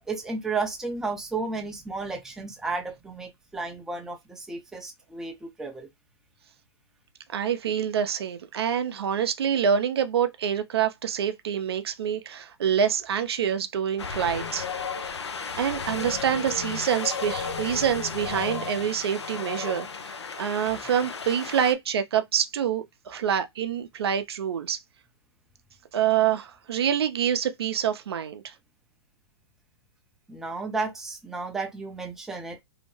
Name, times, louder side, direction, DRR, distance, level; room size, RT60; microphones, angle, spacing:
voice 1, 0.1-5.9 30.3-32.6, right 3 dB, 5° right, 0.4 m, -33 dB
voice 2, 7.3-14.7 15.6-19.9 20.4-24.8 25.9-28.5, right 8 dB, 65° right, 0.5 m, -26 dB
Wind, 14.0-21.7, left 5 dB, 85° left, 0.5 m, -34 dB
2.7 x 2.0 x 3.0 m
hypercardioid pair, 120°, 14 cm